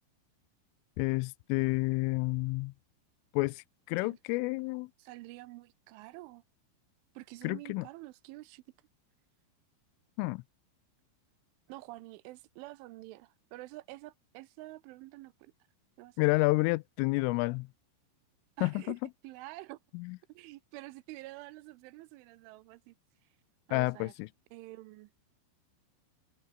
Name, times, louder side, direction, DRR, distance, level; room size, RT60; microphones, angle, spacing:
voice 1, 1.0-2.7 3.3-4.9 7.4-7.9 10.2-10.4 16.2-17.7 18.6-19.0 19.9-20.2 23.7-24.3, left 25 dB, 85° left, 3.1 m, -30 dB
voice 2, 5.0-6.4 7.2-8.6 11.7-15.5 16.0-16.3 18.6-19.0 19.2-19.8 20.3-22.9 23.7-24.1 24.5-25.1, right 19 dB, 80° right, 3.1 m, -48 dB
omnidirectional pair, 5.8 m